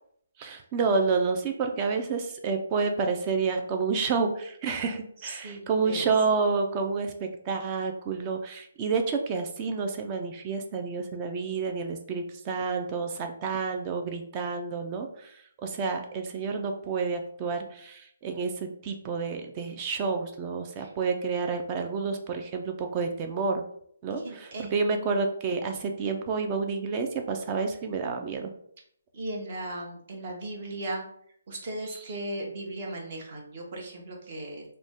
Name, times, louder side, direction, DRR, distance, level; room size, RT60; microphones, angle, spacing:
voice 1, 0.4-23.6 24.0-28.5 31.9-32.0, right 4 dB, 25° right, 5 dB, 0.3 m, -29 dB
voice 2, 5.2-6.1 20.8-20.9 24.2-24.9 29.1-31.0 31.5-34.6, right 1 dB, 40° right, 0 dB, 0.8 m, -37 dB
2.5 x 2.1 x 3.4 m, 0.66 s
hypercardioid pair, 155°, 0 cm